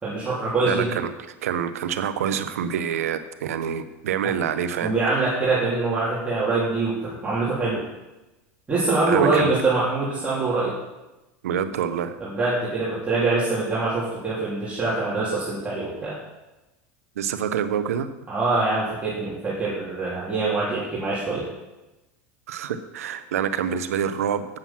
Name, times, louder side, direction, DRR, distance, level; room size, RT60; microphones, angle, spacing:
voice 1, 0.0-0.9 4.8-7.8 8.7-10.7 12.2-16.1 18.3-21.4, right 3 dB, 15° right, -9 dB, 3.2 m, -24 dB
voice 2, 0.6-1.1 1.4-5.2 9.1-9.5 11.4-12.2 17.2-18.1 22.5-24.5, right 8 dB, 90° right, 11 dB, 0.8 m, -26 dB
9.1 x 7.3 x 5.8 m, 1.0 s
supercardioid pair, 105°, 8 cm